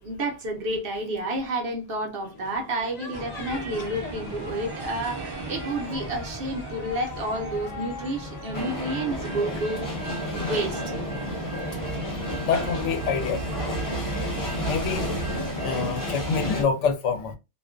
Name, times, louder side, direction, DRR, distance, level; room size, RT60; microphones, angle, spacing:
voice 1, 0.0-9.8 10.3-10.8, right 1 dB, 60° right, 0.8 m, -30 dB
sound 1, 2.2-8.6, left 4 dB, 50° left, 0.5 m, -42 dB
sound 2, 3.1-15.5, right 1 dB, 25° right, 0.6 m, -38 dB
sound 3, 8.5-16.6, equal, 20° left, 0.8 m, -31 dB
voice 2, 12.4-13.8 14.6-15.2 15.6-17.3, left 6 dB, 85° left, 0.9 m, -27 dB
2.4 x 2.2 x 2.3 m
omnidirectional pair, 1.2 m